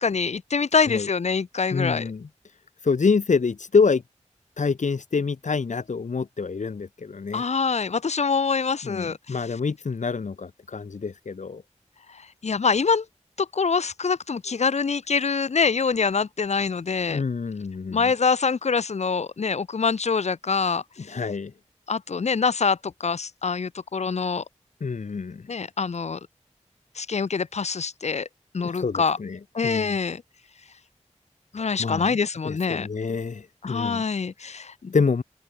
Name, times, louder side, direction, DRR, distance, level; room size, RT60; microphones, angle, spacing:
voice 1, 0.0-2.1 7.3-9.4 12.1-13.0 13.4-17.2 17.9-21.2 21.9-24.4 25.5-26.2 27.0-28.3 28.5-29.2 29.5-30.2 31.5-32.9 33.6-34.9, left 5 dB, 65° left, 0.7 m, -25 dB
voice 2, 1.7-2.3 2.8-4.0 4.6-7.5 8.8-11.6 17.1-18.1 21.1-21.5 24.8-25.5 28.6-30.0 31.8-32.1 32.4-34.0 34.4-34.6 34.9-35.2, left 5 dB, 85° left, 1.6 m, -26 dB
open air
wide cardioid pair, 85°, 12 cm